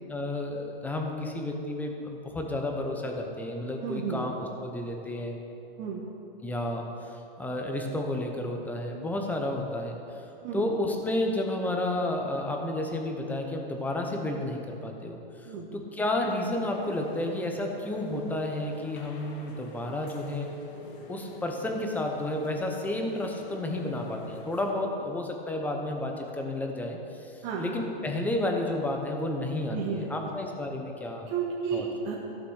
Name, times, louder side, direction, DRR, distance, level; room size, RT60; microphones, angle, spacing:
voice 1, 0.1-5.4 6.4-10.3 10.5-20.5 21.1-31.3 31.7-31.8, left 1 dB, 5° left, 2 dB, 0.9 m, -31 dB
voice 2, 3.8-4.2 5.8-6.0 10.4-10.7 15.4-15.7 27.4-27.7 29.7-30.1 31.3-32.2, right 6 dB, 35° right, -5 dB, 1.5 m, -32 dB
sound 1, 16.5-24.9, left 3 dB, 60° left, 1.8 m, -47 dB
15.0 x 6.1 x 6.4 m, 2.9 s
supercardioid pair, 155°, 30 cm